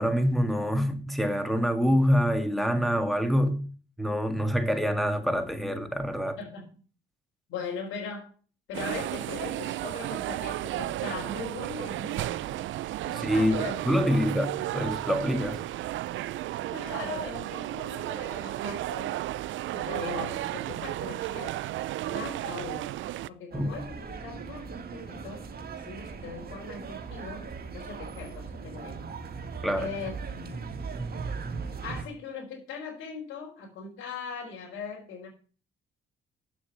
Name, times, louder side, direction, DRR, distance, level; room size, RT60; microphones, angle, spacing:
voice 1, 0.0-3.6 4.0-6.4 13.1-15.6 23.5-23.7 29.6-29.9, equal, ahead, 2.1 m, -26 dB
voice 2, 6.4-6.7 7.5-8.3 8.7-12.6 13.0-13.8 14.0-14.2 16.7-19.2 19.7-21.6 22.0-22.9 23.3-27.5 27.7-29.0 29.7-30.6 31.8-35.3, left 5 dB, 85° left, 4.1 m, -40 dB
sound 1, 8.7-23.3, right 15 dB, 75° right, 0.5 m, -33 dB
sound 2, 23.5-32.0, right 5 dB, 50° right, 1.7 m, -38 dB
8.2 x 7.3 x 8.4 m
cardioid pair, 90°, 20 cm